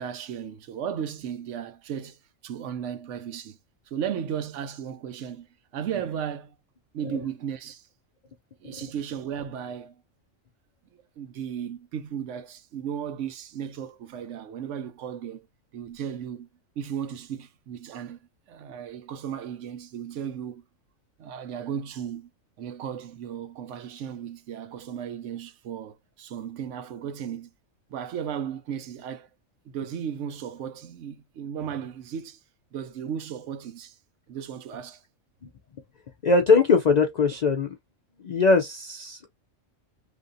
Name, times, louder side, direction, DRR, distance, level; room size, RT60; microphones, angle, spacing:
voice 1, 0.0-3.6 3.9-5.5 5.7-6.6 6.9-7.9 8.6-10.0 11.2-15.5 15.7-16.5 16.8-18.2 18.5-20.6 21.2-22.3 22.6-27.5 27.9-29.3 29.6-32.4 32.7-34.0 34.3-35.0, right 8 dB, 70° right, 0.9 m, -35 dB
voice 2, 36.2-37.7 38.2-39.3, left 4 dB, 80° left, 0.3 m, -21 dB
3.4 x 2.5 x 2.5 m
omnidirectional pair, 1.4 m